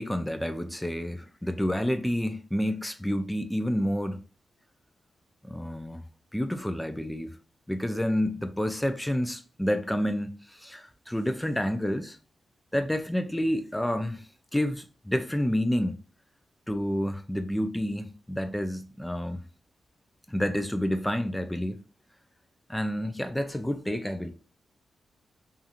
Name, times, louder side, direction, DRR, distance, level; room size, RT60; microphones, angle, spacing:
voice 1, 0.0-4.2 5.4-6.0 6.3-7.3 7.7-12.2 12.7-14.2 14.5-16.0 16.7-19.4 20.3-21.8 22.7-24.3, equal, 5° left, 0.4 m, -29 dB
2.7 x 2.5 x 2.5 m
cardioid pair, 65°, 0 cm